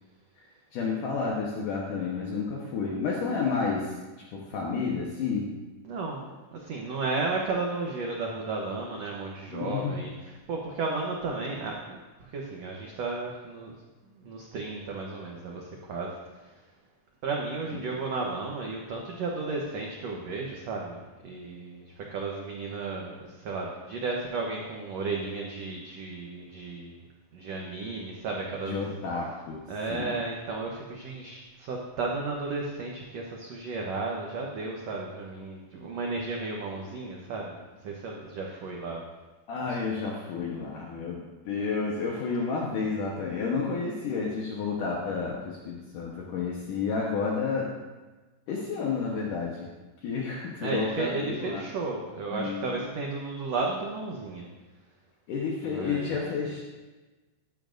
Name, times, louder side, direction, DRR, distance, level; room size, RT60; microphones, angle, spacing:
voice 1, 0.7-5.5 9.5-10.0 28.7-29.6 29.9-30.1 39.5-47.7 48.5-49.7 50.0-51.7 52.3-52.8 55.3-56.6, left 5 dB, 70° left, -2 dB, 2.4 m, -31 dB
voice 2, 5.8-13.7 14.2-16.1 16.4-16.5 17.2-26.9 27.3-28.8 29.7-37.6 37.8-39.0 39.7-39.8 50.6-54.5 55.7-56.2, right 3 dB, 80° right, -1 dB, 1.5 m, -34 dB
14.0 x 11.0 x 2.6 m, 1.2 s
omnidirectional pair, 4.4 m